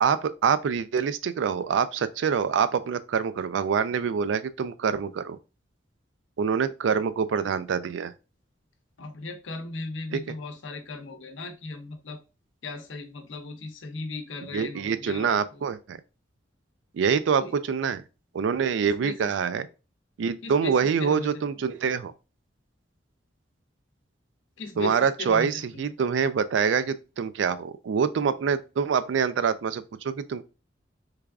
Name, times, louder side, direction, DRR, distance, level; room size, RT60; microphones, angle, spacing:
voice 1, 0.0-5.4 6.4-8.1 10.1-10.2 14.5-16.0 16.9-18.0 18.3-19.7 20.2-22.1 24.8-30.4, right 6 dB, 75° right, 0.3 m, -25 dB
voice 2, 9.0-12.2 12.6-15.6 17.4-17.5 18.8-19.3 20.4-21.7 24.6-25.9, left 2 dB, 80° left, 0.7 m, -37 dB
3.3 x 2.4 x 3.4 m
head